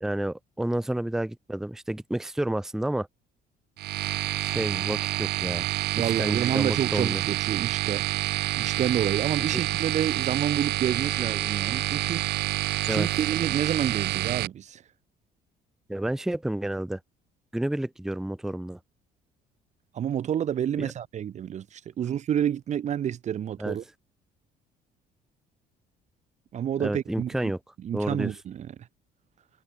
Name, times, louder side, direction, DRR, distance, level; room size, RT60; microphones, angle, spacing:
voice 1, 0.0-3.1 4.4-5.7 6.0-7.2 12.9-13.1 15.9-17.0 17.5-18.8 20.8-20.9 23.6-23.8 26.8-27.6 27.9-28.3, right 1 dB, 5° right, 0.6 m, -30 dB
sound 1, 3.8-14.5, right 16 dB, 75° right, 1.2 m, -28 dB
voice 2, 5.9-8.0 8.6-12.2 12.9-14.8 19.9-23.8 26.5-27.5 27.8-28.7, right 9 dB, 45° right, 0.7 m, -29 dB
cardioid pair, 110°, 17 cm